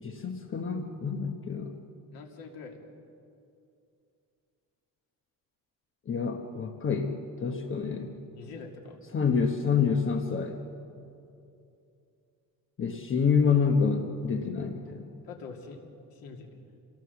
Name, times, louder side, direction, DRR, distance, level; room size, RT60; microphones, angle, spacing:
voice 1, 0.0-1.8 6.1-8.1 9.1-10.6 12.8-15.1, left 6 dB, 35° left, 4 dB, 1.1 m, -27 dB
voice 2, 2.1-2.9 8.3-9.0 15.2-15.8 16.1-16.6, left 4 dB, 85° left, 1 dB, 2.8 m, -44 dB
26.0 x 18.0 x 7.2 m, 2.6 s
cardioid pair, 180°, 35 cm